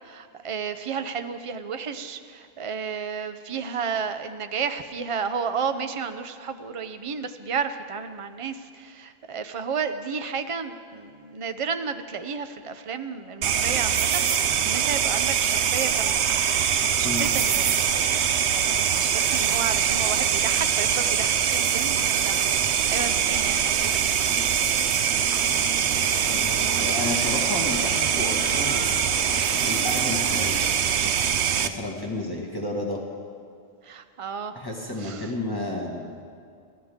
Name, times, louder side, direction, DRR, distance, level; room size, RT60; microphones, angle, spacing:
voice 1, 0.0-16.2 17.0-17.8 18.5-22.4 22.9-24.2 26.1-26.3 33.8-34.5 35.0-35.3, right 6 dB, 35° right, 9 dB, 0.7 m, -32 dB
sound 1, 13.4-31.7, right 8 dB, 80° right, 1.0 m, -23 dB
sound 2, 22.8-30.8, left 6 dB, 90° left, 1.1 m, -42 dB
voice 2, 26.3-29.0 29.7-33.0 34.5-36.2, left 1 dB, 20° left, -2 dB, 1.9 m, -32 dB
26.5 x 14.0 x 3.7 m, 2.3 s
omnidirectional pair, 1.1 m